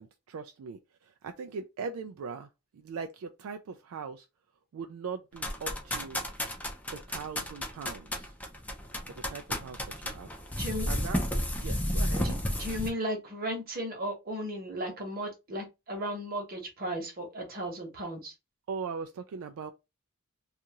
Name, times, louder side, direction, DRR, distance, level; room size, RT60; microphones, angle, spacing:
voice 1, 0.0-4.3 4.7-6.2 6.9-8.3 9.3-10.3 10.9-11.3 11.6-12.3 12.7-12.8 18.7-19.7, right 5 dB, 70° right, 0.3 m, -40 dB
sound 1, 5.4-12.9, left 1 dB, 5° left, 0.4 m, -32 dB
voice 2, 12.2-18.3, equal, 45° right, 1.0 m, -35 dB
2.7 x 2.4 x 2.9 m
head